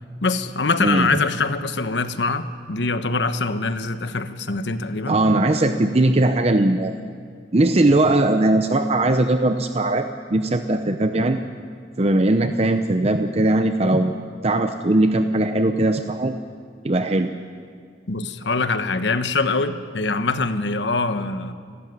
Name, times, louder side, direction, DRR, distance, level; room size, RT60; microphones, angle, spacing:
voice 1, 0.2-5.2 18.1-21.5, left 3 dB, 85° left, 10 dB, 1.1 m, -23 dB
voice 2, 5.1-6.9 7.5-11.4 12.0-14.2 14.4-16.4 16.8-17.3, right 2 dB, 35° right, 8 dB, 0.7 m, -19 dB
28.5 x 13.0 x 9.6 m, 2.1 s
head